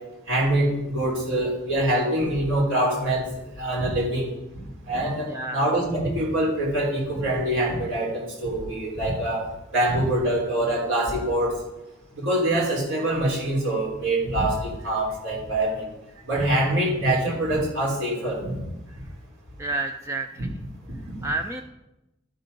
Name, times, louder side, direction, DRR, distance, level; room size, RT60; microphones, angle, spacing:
voice 1, 0.3-3.3 3.6-4.3 4.8-9.4 9.7-11.5 12.1-15.9 16.3-18.5 21.2-21.3, right 1 dB, 85° right, -4 dB, 3.5 m, -24 dB
voice 2, 5.3-5.6 19.6-20.5 21.2-21.6, right 2 dB, 15° right, 4 dB, 0.3 m, -30 dB
12.0 x 4.4 x 5.3 m, 0.95 s
head